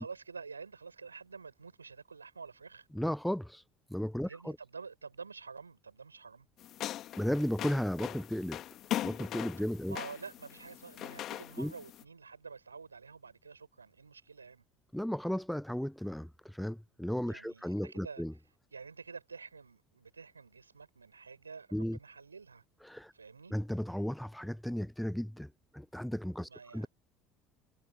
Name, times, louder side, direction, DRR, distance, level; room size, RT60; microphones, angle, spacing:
voice 1, 0.0-2.9 4.2-6.5 9.9-14.6 17.3-18.2 18.7-22.6 23.1-23.5 26.5-26.9, right 5 dB, 85° right, 6.6 m, -48 dB
voice 2, 2.9-3.6 3.9-4.6 7.2-8.6 9.0-10.0 11.6-11.7 14.9-18.3 21.7-22.0 22.9-23.1 23.5-25.5 25.7-26.9, equal, ahead, 0.5 m, -34 dB
sound 1, 6.6-12.0, left 12 dB, 45° left, 2.0 m, -40 dB
figure-of-eight pair, 65°, 0 cm